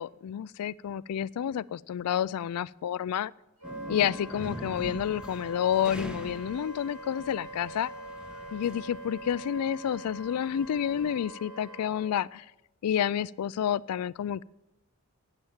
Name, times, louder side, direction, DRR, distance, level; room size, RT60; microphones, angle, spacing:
voice 1, 0.0-3.3 3.9-7.9 8.5-12.5 12.8-14.4, left 9 dB, 85° left, 21 dB, 0.3 m, -29 dB
sound 1, 3.6-11.2, equal, 5° right, 1.1 m, -44 dB
Wind instrument woodwind instrument, 3.6-12.1, right 1 dB, 70° right, 6.0 m, -44 dB
13.5 x 9.0 x 7.3 m, 1.0 s
head